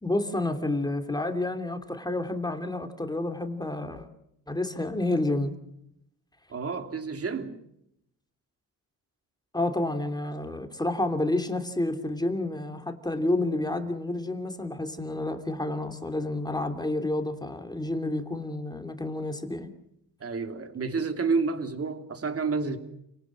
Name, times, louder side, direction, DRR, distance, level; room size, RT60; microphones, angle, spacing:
voice 1, 0.0-4.1 4.5-5.5 9.5-19.7, left 2 dB, 10° left, 3.0 m, -29 dB
voice 2, 6.5-7.6 20.2-22.8, right 4 dB, 40° right, 3.1 m, -29 dB
29.5 x 18.5 x 7.7 m
cardioid pair, 90°, 36 cm